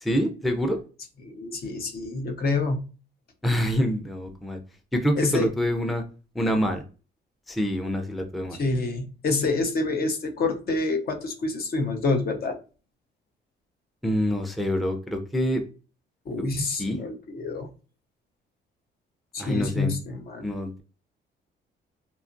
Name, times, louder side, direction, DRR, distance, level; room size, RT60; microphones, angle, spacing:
voice 1, 0.0-0.8 3.4-4.6 4.9-6.0 6.4-6.8 7.5-8.6 14.0-15.6 16.8-17.0 19.4-19.9 20.4-20.8, equal, ahead, 4 dB, 0.4 m, -26 dB
voice 2, 1.2-2.8 5.2-5.5 8.5-12.6 16.3-17.7 19.3-20.5, left 3 dB, 50° left, 5 dB, 0.6 m, -27 dB
2.8 x 2.3 x 2.5 m, 0.35 s
cardioid pair, 90°, 20 cm